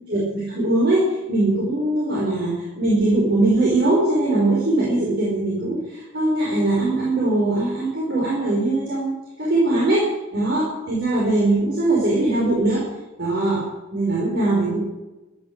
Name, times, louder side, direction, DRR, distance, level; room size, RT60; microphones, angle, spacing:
voice 1, 0.1-9.1 9.4-12.9 13.2-13.7 13.9-14.8, right 2 dB, 60° right, -5 dB, 5.3 m, -21 dB
15.5 x 9.9 x 8.2 m, 1.1 s
head